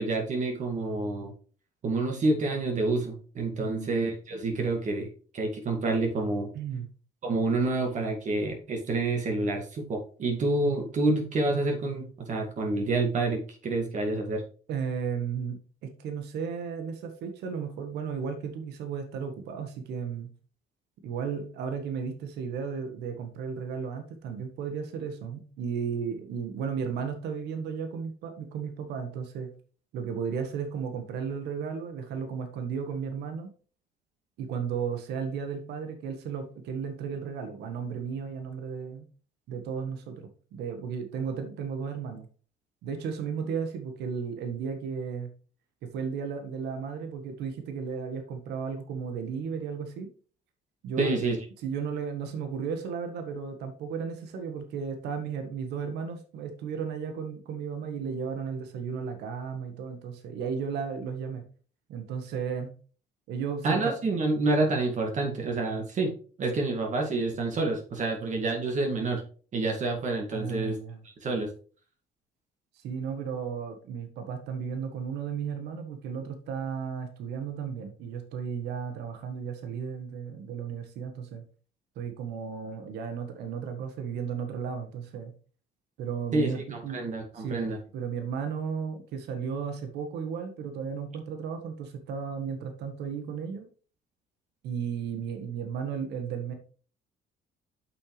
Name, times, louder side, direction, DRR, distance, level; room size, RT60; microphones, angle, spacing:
voice 1, 0.0-1.3 1.8-6.5 7.2-14.4 51.0-51.4 63.6-66.1 66.4-69.2 69.5-70.8 71.0-71.5 86.3-87.8, right 2 dB, 45° right, 1 dB, 2.1 m, -28 dB
voice 2, 3.6-3.9 6.5-6.9 14.7-20.3 21.0-29.5 29.9-33.5 34.4-39.0 39.5-42.2 42.8-45.3 45.9-50.1 50.8-51.2 51.6-61.4 61.9-62.7 63.3-64.0 70.3-71.0 72.7-81.4 81.9-85.3 86.0-87.0 87.3-87.7 87.9-93.7 94.6-96.5, right 6 dB, 80° right, 6 dB, 1.5 m, -34 dB
7.9 x 6.2 x 3.3 m, 0.40 s
cardioid pair, 110°, 17 cm